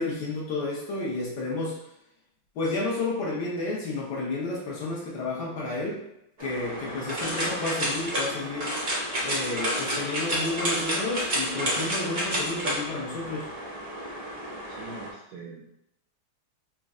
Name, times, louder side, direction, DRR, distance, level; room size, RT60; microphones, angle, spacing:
voice 1, 0.0-1.8 2.5-6.0 6.4-8.7 9.2-13.5, left 2 dB, 60° left, -4 dB, 1.3 m, -31 dB
sound 1, 6.4-15.1, equal, 55° right, 0.4 m, -30 dB
voice 2, 14.7-15.7, right 3 dB, 75° right, -2 dB, 1.0 m, -43 dB
4.2 x 2.2 x 3.6 m, 0.80 s
omnidirectional pair, 2.3 m